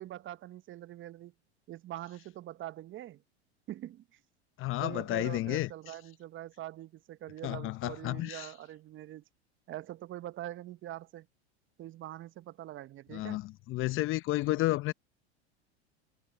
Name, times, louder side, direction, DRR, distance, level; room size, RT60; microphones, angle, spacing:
voice 1, 0.0-1.3 1.7-3.2 3.7-4.2 4.8-9.2 9.7-11.3 11.8-13.4, right 13 dB, 35° right, 1.2 m, -43 dB
voice 2, 4.6-5.7 7.4-8.5 13.1-14.9, left 17 dB, 40° left, 0.9 m, -31 dB
hypercardioid pair, 90°, 33 cm